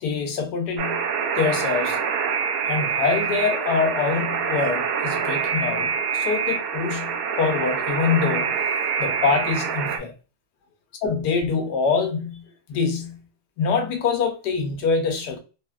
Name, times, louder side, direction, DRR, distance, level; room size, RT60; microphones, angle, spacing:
voice 1, 0.0-1.0 1.4-2.0 2.6-8.6 9.0-10.1 11.0-13.2 13.6-15.4, left 5 dB, 85° left, 1.3 m, -25 dB
Alarm, 0.8-10.0, right 6 dB, 70° right, 0.9 m, -25 dB
3.5 x 2.0 x 2.3 m
omnidirectional pair, 1.7 m